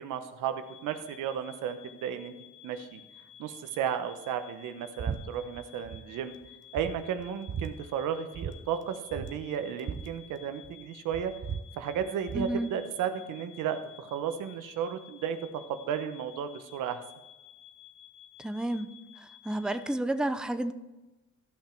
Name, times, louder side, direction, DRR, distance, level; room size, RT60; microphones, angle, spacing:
voice 1, 0.0-2.3 2.6-3.0 3.4-6.3 6.7-11.3 11.8-17.0, right 8 dB, 90° right, 9 dB, 1.0 m, -34 dB
sound 1, 0.6-19.9, left 11 dB, 80° left, 2.7 m, -54 dB
sound 2, 5.0-5.2 5.5-6.0 6.4-6.5 6.8-7.7 8.3-8.6 8.8-8.9 9.1-10.8 11.1-12.5, right 6 dB, 40° right, 0.9 m, -37 dB
voice 2, 12.3-12.7 18.4-18.9 19.2-20.7, right 1 dB, 5° right, 10 dB, 0.7 m, -31 dB
13.5 x 5.9 x 4.5 m, 1.1 s
cardioid pair, 90°, 30 cm